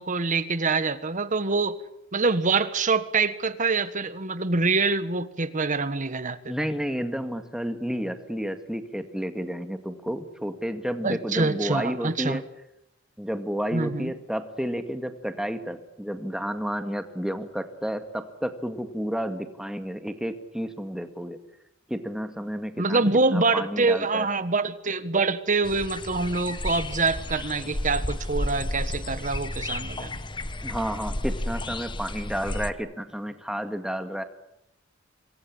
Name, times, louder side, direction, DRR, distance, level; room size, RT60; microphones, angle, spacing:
voice 1, 0.0-1.8 2.1-6.5 11.0-12.4 13.7-14.1 22.8-30.2, right 3 dB, 40° right, 12 dB, 1.5 m, -25 dB
voice 2, 6.5-12.4 13.2-21.4 21.9-24.3 30.6-34.2, equal, 5° right, 7 dB, 2.1 m, -31 dB
sound 1, 25.6-32.7, left 1 dB, 25° left, 1.2 m, -32 dB
27.0 x 22.0 x 8.8 m, 0.82 s
head